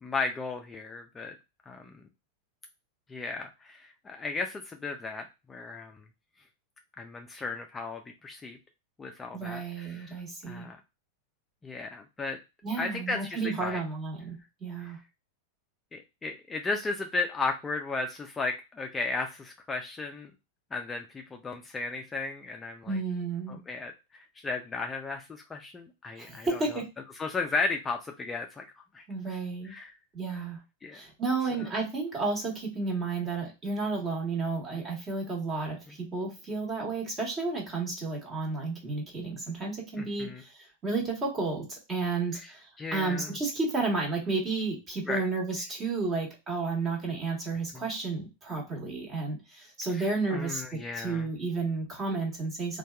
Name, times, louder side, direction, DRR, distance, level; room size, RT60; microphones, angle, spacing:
voice 1, 0.0-1.3 1.7-1.9 3.1-6.0 7.0-8.6 9.0-10.2 10.5-10.8 11.6-12.4 12.8-13.8 14.8-14.9 15.9-20.3 20.7-23.0 23.5-26.6 27.2-28.6 28.9-29.0 29.6-29.9 30.8-31.0 40.0-40.4 42.3-42.5 42.8-43.3 45.1-45.2 49.9-51.3, left 3 dB, 15° left, 3 dB, 0.3 m, -35 dB
voice 2, 9.3-10.7 12.6-15.0 22.9-23.6 26.2-26.9 29.1-29.7 30.1-30.6 30.9-52.8, right 3 dB, 25° right, 0 dB, 1.2 m, -32 dB
2.7 x 2.2 x 2.2 m, 0.26 s
hypercardioid pair, 115°, 0 cm